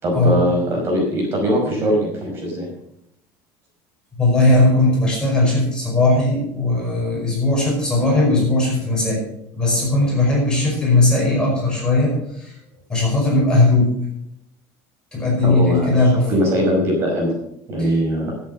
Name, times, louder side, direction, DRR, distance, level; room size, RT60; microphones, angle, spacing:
voice 1, 0.0-2.6 15.4-15.9 16.3-17.3 17.7-18.3, equal, 30° right, -1 dB, 5.1 m, -20 dB
voice 2, 4.2-9.2 9.5-12.5 12.9-13.9 15.1-16.3 17.8-17.9, left 2 dB, 10° left, -3 dB, 5.4 m, -18 dB
13.0 x 8.2 x 6.5 m, 0.75 s
cardioid pair, 160°, 8 cm